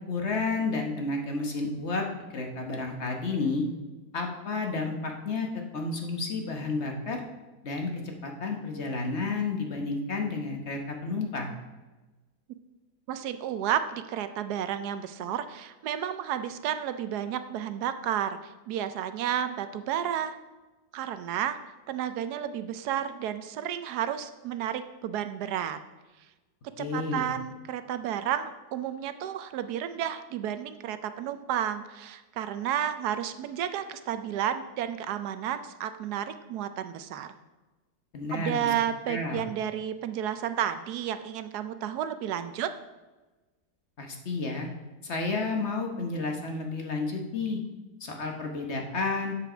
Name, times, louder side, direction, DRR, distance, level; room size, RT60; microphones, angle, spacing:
voice 1, 0.1-2.0 2.3-3.6 4.1-5.5 5.7-7.2 7.6-11.5 26.8-27.3 38.1-38.7 39.1-39.4 44.0-44.7 45.0-47.6 48.0-49.3, left 3 dB, 45° left, 2 dB, 1.2 m, -31 dB
voice 2, 13.1-20.4 20.9-21.6 21.9-25.8 26.8-37.3 38.3-42.7, right 10 dB, 80° right, 11 dB, 1.1 m, -32 dB
7.5 x 6.9 x 5.0 m, 1.2 s
omnidirectional pair, 1.7 m